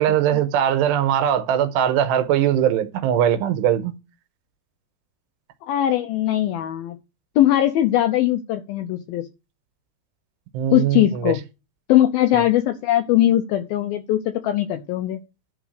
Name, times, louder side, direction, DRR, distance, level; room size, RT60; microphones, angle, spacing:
voice 1, 0.0-3.9 10.5-11.3 12.3-12.4, right 10 dB, 85° right, 3.0 m, -20 dB
voice 2, 5.7-7.0 7.4-9.3 10.7-11.4 11.9-15.2, left 13 dB, 85° left, 2.1 m, -20 dB
11.0 x 4.0 x 6.5 m
omnidirectional pair, 4.9 m